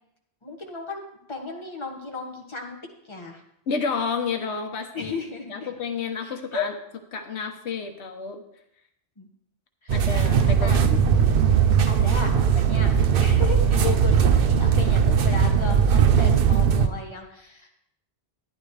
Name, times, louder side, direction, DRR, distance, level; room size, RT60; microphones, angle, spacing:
voice 1, 0.4-1.0 1.3-2.8 3.0-3.4 4.9-5.7 6.2-6.7 9.2-9.3 9.8-10.0 10.6-10.8 11.9-12.9 13.2-17.7, left 4 dB, 25° left, 0 dB, 1.6 m, -34 dB
voice 2, 3.7-5.1 5.5-6.7 7.1-8.4 9.9-11.0, left 5 dB, 90° left, 5 dB, 1.2 m, -30 dB
sound 1, 9.9-16.9, right 7 dB, 60° right, 0.8 m, -19 dB
12.5 x 10.5 x 3.3 m, 0.77 s
omnidirectional pair, 1.1 m